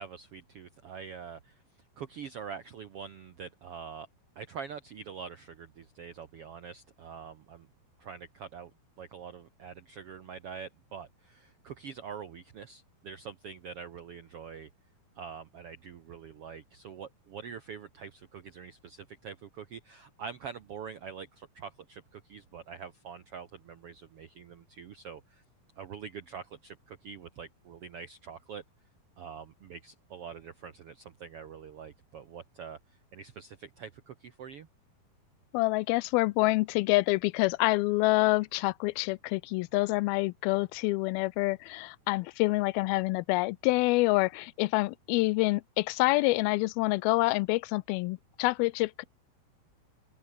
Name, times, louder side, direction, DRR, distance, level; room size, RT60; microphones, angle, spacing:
voice 1, 0.0-1.6 2.0-4.1 4.3-7.7 8.0-8.7 9.0-14.7 15.1-25.4 25.8-28.6 29.2-34.7, right 6 dB, 75° right, 1.3 m, -45 dB
voice 2, 35.5-49.0, left 22 dB, 85° left, 2.4 m, -27 dB
open air
omnidirectional pair, 4.3 m